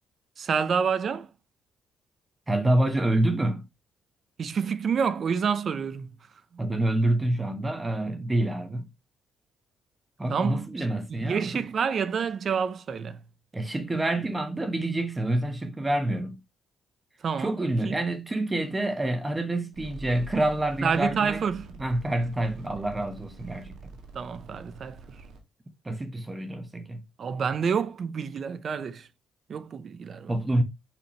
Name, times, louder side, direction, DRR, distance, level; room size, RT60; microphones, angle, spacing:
voice 1, 0.4-1.3 4.4-6.1 10.3-13.2 17.2-17.6 17.8-18.0 20.8-21.7 24.1-25.0 27.2-29.1 29.5-30.3, right 6 dB, 50° right, 0.7 m, -28 dB
voice 2, 2.5-3.7 6.6-8.9 10.2-11.7 13.5-16.4 17.4-21.4 21.8-23.8 25.8-27.0 30.3-30.6, right 1 dB, 20° right, 1.1 m, -27 dB
sound 1, 19.7-25.4, right 3 dB, 80° right, 1.9 m, -46 dB
6.0 x 5.9 x 3.0 m
cardioid pair, 90°, 0 cm